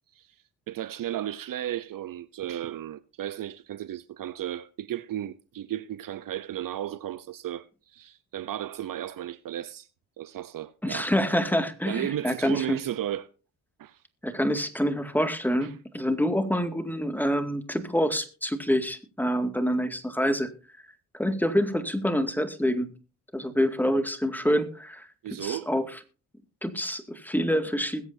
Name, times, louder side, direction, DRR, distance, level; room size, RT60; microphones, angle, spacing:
voice 1, 0.7-9.9 10.2-11.1 11.9-13.3 13.8-14.0 15.6-15.7 25.2-25.7, right 12 dB, 55° right, 0.7 m, -34 dB
voice 2, 10.8-12.8 14.2-20.5 21.1-22.9 23.3-25.1 25.4-25.8 26.6-28.1, equal, 5° left, 2.1 m, -26 dB
21.0 x 8.3 x 2.7 m
hypercardioid pair, 50°, 39 cm